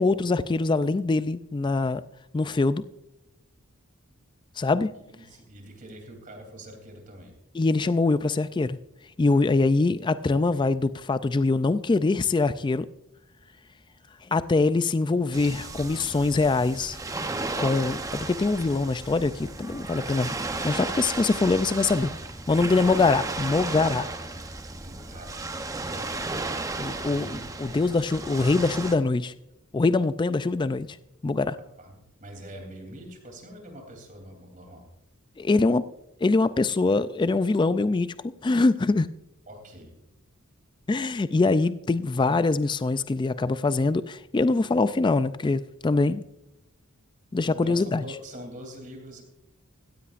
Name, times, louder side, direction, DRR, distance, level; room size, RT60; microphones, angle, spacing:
voice 1, 0.0-2.0 2.3-2.8 4.6-4.9 7.6-8.8 9.2-12.9 14.3-17.0 17.6-20.3 20.6-22.1 22.5-24.1 26.8-29.3 29.7-30.9 31.2-31.6 35.4-35.8 36.2-38.1 38.4-39.1 40.9-46.2 47.3-48.0, left 3 dB, 20° left, 14 dB, 0.3 m, -23 dB
voice 2, 5.1-7.3 24.8-26.3 27.1-27.5 31.6-34.8 39.5-39.9 47.4-49.2, right 1 dB, 35° right, 3 dB, 3.2 m, -44 dB
sound 1, 15.3-29.0, right 2 dB, 15° right, 0.8 m, -34 dB
16.5 x 15.5 x 2.5 m, 0.91 s
head